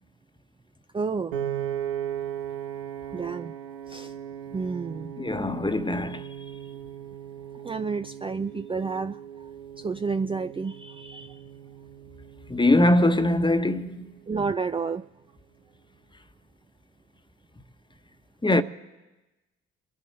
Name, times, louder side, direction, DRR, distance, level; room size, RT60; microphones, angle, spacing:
voice 1, 0.9-1.3 3.1-3.5 3.9-4.1 4.5-5.1 7.6-9.5 9.8-11.4 14.3-15.0, right 4 dB, 20° right, 0.5 m, -30 dB
Piano, 1.3-13.6, right 10 dB, 85° right, 0.8 m, -38 dB
voice 2, 5.2-6.2 12.5-14.0 18.4-18.6, left 1 dB, 15° left, 1.2 m, -22 dB
28.0 x 11.0 x 4.0 m
hypercardioid pair, 45°, 30 cm